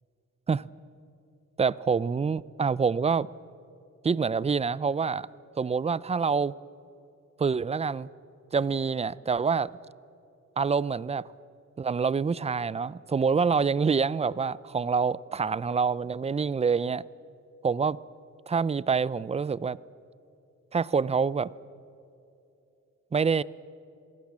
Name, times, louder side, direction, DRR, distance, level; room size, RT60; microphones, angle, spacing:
voice 1, 1.6-3.3 4.0-5.3 5.6-6.6 7.4-8.1 8.5-9.7 10.6-11.3 11.8-17.0 17.6-18.0 18.5-19.8 20.7-21.5 23.1-23.4, right 5 dB, 20° right, 21 dB, 0.4 m, -26 dB
27.0 x 19.0 x 7.4 m, 2.8 s
cardioid pair, 115°, 29 cm